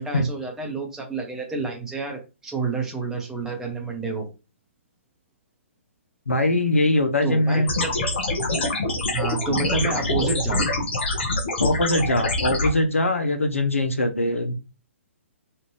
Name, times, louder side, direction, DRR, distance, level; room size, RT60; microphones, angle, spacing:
voice 1, 0.0-4.3 7.2-7.9 9.1-10.7, right 4 dB, 5° right, 1 dB, 0.8 m, -29 dB
voice 2, 6.3-7.7 11.6-14.5, left 1 dB, 75° left, 6 dB, 0.7 m, -22 dB
sound 1, 7.7-12.7, left 2 dB, 55° left, 0.9 m, -25 dB
3.1 x 2.5 x 3.1 m, 0.30 s
figure-of-eight pair, 125°, 7 cm